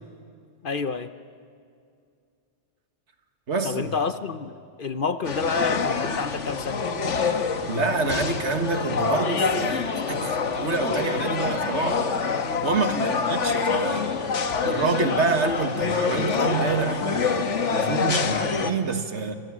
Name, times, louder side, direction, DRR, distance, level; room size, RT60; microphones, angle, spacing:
voice 1, 0.6-1.1 3.6-6.9 13.0-13.4, left 5 dB, 50° left, 11 dB, 0.9 m, -29 dB
voice 2, 3.5-3.9 7.7-12.0 12.6-14.1 14.6-19.3, right 4 dB, 70° right, 7 dB, 1.9 m, -27 dB
sound 1, 5.2-18.7, left 5 dB, 75° left, 1.6 m, -26 dB
29.5 x 25.0 x 7.4 m, 2.4 s
omnidirectional pair, 1.2 m